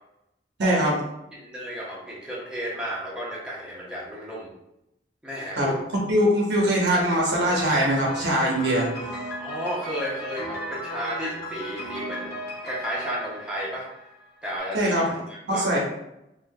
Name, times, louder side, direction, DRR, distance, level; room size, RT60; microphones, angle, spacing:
voice 1, 0.6-1.0 5.6-5.7 6.1-8.9 14.7-15.2 15.5-15.8, equal, 70° right, -2 dB, 0.9 m, -22 dB
voice 2, 1.3-4.5 5.2-5.7 9.4-12.4 12.6-13.9 14.4-14.8 15.3-15.7, equal, 5° right, -6 dB, 0.6 m, -33 dB
Piano, 7.5-14.4, equal, 60° left, 0.8 m, -35 dB
3.4 x 2.4 x 2.3 m, 0.86 s
head